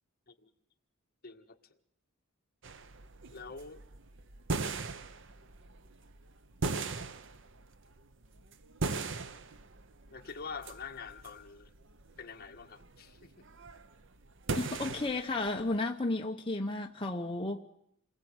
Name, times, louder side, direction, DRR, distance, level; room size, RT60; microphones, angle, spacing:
voice 1, 1.2-1.6 3.3-3.8 10.1-11.7 12.2-13.4, left 5 dB, 50° left, 1.8 m, -45 dB
sound 1, 2.6-15.8, right 3 dB, 65° right, 1.0 m, -40 dB
voice 2, 14.5-17.6, left 2 dB, 25° left, 1.0 m, -33 dB
28.5 x 21.0 x 8.0 m
head